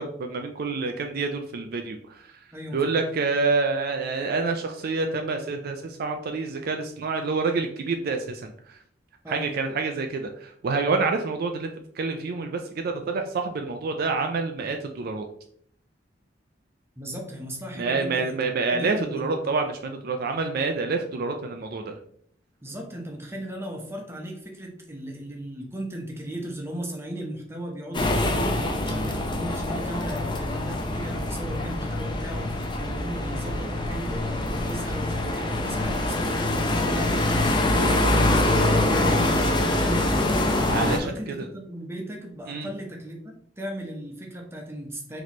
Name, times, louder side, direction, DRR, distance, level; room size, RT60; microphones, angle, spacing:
voice 1, 0.0-2.4 2.7-8.8 9.3-15.3 17.8-22.0 37.7-38.2 40.7-41.5 42.5-42.7, right 4 dB, 55° right, 5 dB, 0.4 m, -28 dB
voice 2, 2.5-3.0 9.2-9.5 17.0-19.3 22.6-40.5 40.9-43.2 43.6-45.2, right 1 dB, 15° right, 1 dB, 0.8 m, -36 dB
sound 1, 27.9-41.0, left 1 dB, 25° left, 0.5 m, -24 dB
4.1 x 3.0 x 3.0 m, 0.64 s
head